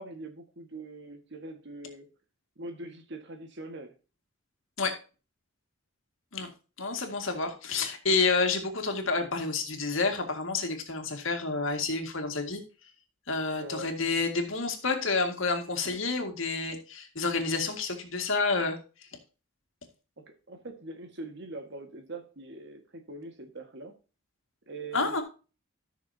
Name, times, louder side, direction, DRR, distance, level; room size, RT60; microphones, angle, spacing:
voice 1, 0.0-2.1 2.6-3.9 13.5-14.0 20.2-23.9 24.7-25.2, right 2 dB, 55° right, 6 dB, 1.7 m, -42 dB
voice 2, 6.8-12.6 13.3-18.8 24.9-25.2, left 4 dB, 65° left, 5 dB, 2.0 m, -29 dB
13.5 x 6.4 x 2.8 m, 0.33 s
head